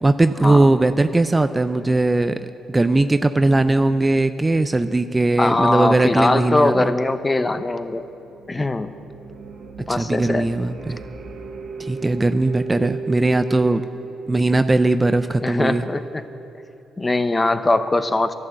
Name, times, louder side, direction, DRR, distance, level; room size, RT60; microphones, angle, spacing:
voice 1, 0.0-6.9 9.9-11.0 11.8-13.8 14.3-15.8, right 2 dB, 20° right, 10 dB, 0.4 m, -19 dB
voice 2, 5.4-8.1 8.5-8.9 9.9-10.5 15.4-16.2 17.0-18.3, left 2 dB, 20° left, 10 dB, 0.7 m, -21 dB
sound 1, 7.6-16.8, right 4 dB, 55° right, 1.0 m, -37 dB
12.0 x 12.0 x 7.6 m, 2.8 s
cardioid pair, 90°, 0 cm